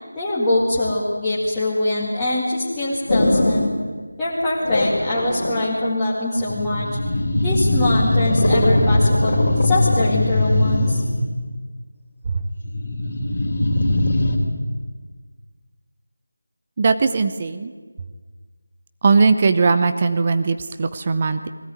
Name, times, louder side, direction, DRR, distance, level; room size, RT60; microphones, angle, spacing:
voice 1, 0.2-3.7 4.2-6.9 7.4-11.0, left 1 dB, 5° left, -11 dB, 2.1 m, -23 dB
sound 1, 3.1-3.8 4.6-5.6 6.4-11.3 12.6-14.4, left 1 dB, 40° left, 3.5 m, -20 dB
voice 2, 16.8-17.7 19.0-21.5, right 4 dB, 20° right, 9 dB, 0.7 m, -19 dB
20.5 x 16.5 x 9.6 m, 1.5 s
figure-of-eight pair, 175°, 0 cm